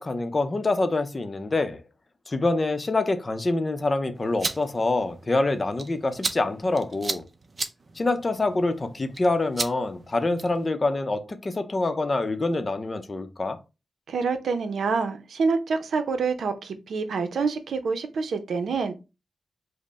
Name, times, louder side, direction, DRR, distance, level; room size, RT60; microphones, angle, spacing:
voice 1, 0.0-1.8 2.3-7.3 8.0-13.6, left 2 dB, 35° left, 0.6 m, -26 dB
sound 1, 4.2-10.7, right 3 dB, 40° right, 0.6 m, -36 dB
voice 2, 14.1-18.9, right 4 dB, 90° right, 0.6 m, -27 dB
5.2 x 2.1 x 4.1 m
wide cardioid pair, 95°, 0 cm